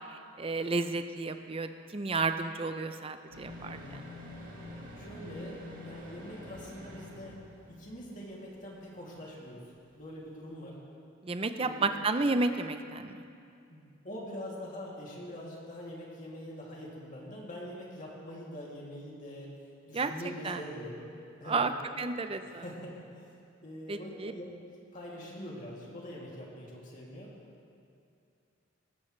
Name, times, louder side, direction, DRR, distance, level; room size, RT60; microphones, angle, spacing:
voice 1, 0.1-4.1 11.2-13.2 19.9-20.6 21.4-21.7 22.0-22.6 23.9-24.3, right 3 dB, 30° right, 9 dB, 0.5 m, -32 dB
sound 1, 3.3-8.3 8.6-8.7, left 1 dB, 45° right, 2.1 m, -46 dB
voice 2, 3.6-4.0 5.0-5.6 5.8-7.3 7.7-9.6 9.9-10.8 11.6-12.1 13.7-19.5 19.9-21.1 21.4-21.7 22.4-23.0 23.6-24.5 24.9-27.3, equal, 40° left, -4 dB, 2.6 m, -44 dB
18.0 x 14.0 x 3.2 m, 2.5 s
head